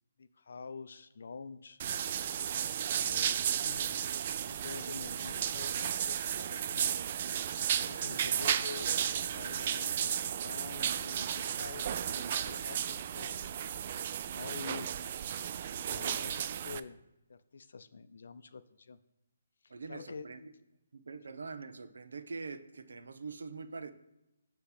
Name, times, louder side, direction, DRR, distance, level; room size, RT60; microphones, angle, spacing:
voice 1, 0.2-1.8 2.9-4.0 4.5-6.9 7.8-13.4 14.3-14.9 15.8-17.0 17.3-19.0 19.9-20.5, left 4 dB, 70° left, 13 dB, 0.5 m, -47 dB
sound 1, 1.8-16.8, right 9 dB, 40° right, 0.3 m, -34 dB
voice 2, 19.7-20.4 20.9-23.9, right 4 dB, 80° right, 10 dB, 0.7 m, -44 dB
8.2 x 3.0 x 5.9 m, 0.95 s
hypercardioid pair, 160°, 0 cm